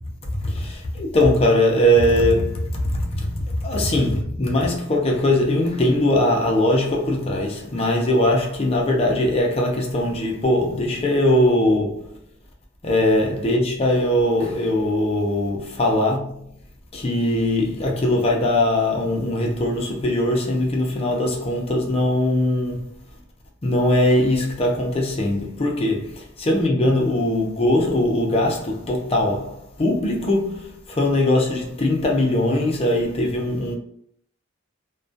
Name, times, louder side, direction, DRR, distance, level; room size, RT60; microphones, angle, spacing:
voice 1, 0.4-3.3 3.6-12.0 12.8-16.3 16.9-22.9 23.6-33.7, left 1 dB, 30° left, 0.5 m, -21 dB
2.3 x 2.2 x 2.6 m
head